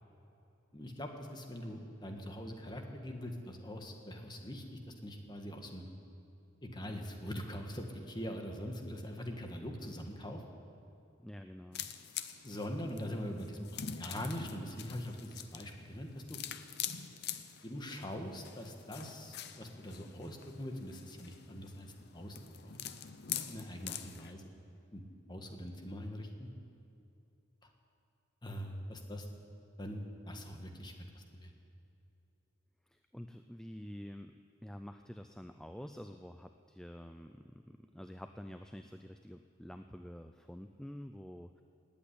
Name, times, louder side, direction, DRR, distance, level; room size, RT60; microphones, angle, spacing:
voice 1, 0.7-5.8 6.6-10.4 12.4-16.4 17.6-22.4 22.6-22.8 23.5-24.4 24.9-25.0 25.3-26.5 28.4-29.2 29.8-31.5, equal, 20° left, 4 dB, 1.5 m, -43 dB
voice 2, 11.2-11.9 32.9-34.3 34.6-41.6, equal, 5° left, 7 dB, 0.3 m, -48 dB
sound 1, 11.7-24.3, left 9 dB, 55° left, 0.7 m, -45 dB
16.5 x 8.7 x 10.0 m, 2.7 s
head